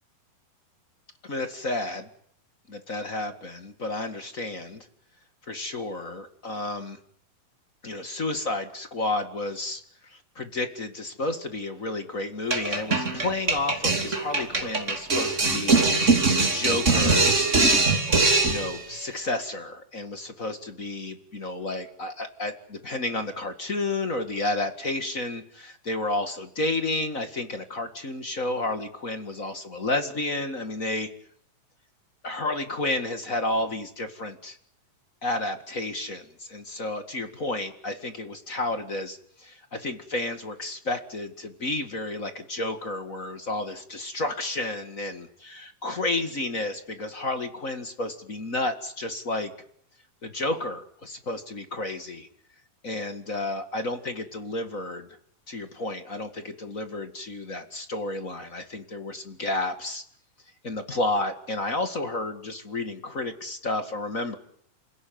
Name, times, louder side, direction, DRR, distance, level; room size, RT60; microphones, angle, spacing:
voice 1, 1.2-2.1 2.7-4.8 5.5-7.0 7.8-17.5 18.4-31.1 32.2-34.6 35.2-49.5 50.2-52.3 52.8-55.1 55.5-60.0 60.6-64.4, left 2 dB, 30° left, 8 dB, 1.6 m, -31 dB
sound 1, 12.5-18.8, right 3 dB, 20° right, 2.9 m, -22 dB
28.0 x 16.5 x 9.4 m, 0.66 s
omnidirectional pair, 4.2 m